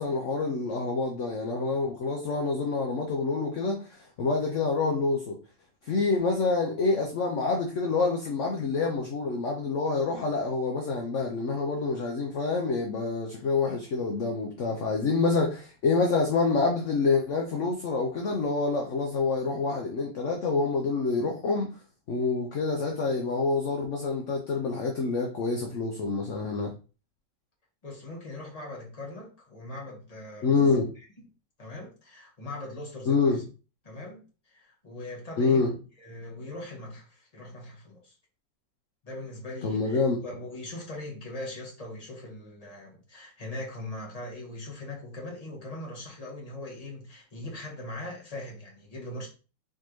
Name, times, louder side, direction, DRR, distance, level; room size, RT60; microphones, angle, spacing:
voice 1, 0.0-5.4 5.8-21.7 22.1-26.7 30.4-30.9 33.1-33.4 35.4-35.7 39.6-40.2, left 4 dB, 60° left, 0.8 m, -27 dB
voice 2, 27.8-30.6 31.2-31.3 31.6-33.4 33.8-34.2 34.5-38.1 39.0-49.3, left 1 dB, 20° left, 1.3 m, -40 dB
4.5 x 3.6 x 3.1 m
omnidirectional pair, 2.0 m